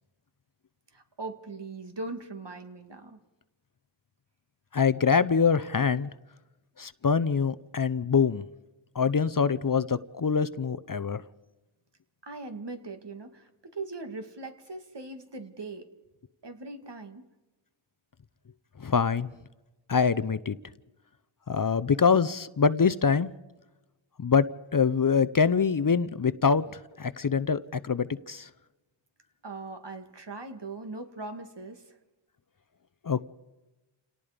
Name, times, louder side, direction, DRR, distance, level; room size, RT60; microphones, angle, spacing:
voice 1, 0.9-3.2 12.2-15.9 16.4-17.3 29.4-31.9, right 3 dB, 55° right, 6 dB, 2.3 m, -40 dB
voice 2, 4.7-6.1 6.8-8.5 8.9-11.2 18.8-19.3 19.9-20.6 21.5-23.3 24.2-24.5 24.7-28.5 33.0-33.3, left 6 dB, 40° left, 15 dB, 0.7 m, -24 dB
28.5 x 18.5 x 5.2 m, 1.1 s
wide cardioid pair, 60°, 49 cm